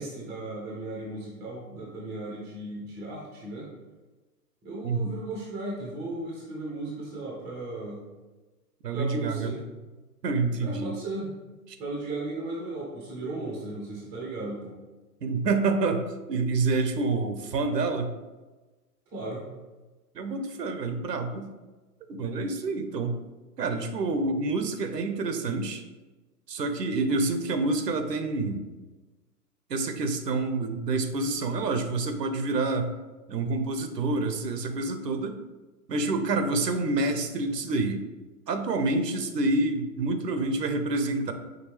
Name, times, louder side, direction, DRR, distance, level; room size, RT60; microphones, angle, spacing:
voice 1, 0.0-3.7 4.6-8.0 8.9-9.6 10.6-11.4 11.8-14.7 19.1-19.4, right 2 dB, 5° right, -5 dB, 0.4 m, -36 dB
voice 2, 4.8-5.2 8.8-9.5 10.2-11.0 15.2-18.1 20.1-21.5 22.1-23.2 23.6-25.8 26.5-28.6 29.7-32.9 33.3-35.4 35.9-38.0 38.5-41.3, right 3 dB, 85° right, 7 dB, 0.7 m, -27 dB
5.1 x 3.2 x 3.1 m, 1.2 s
figure-of-eight pair, 120°, 47 cm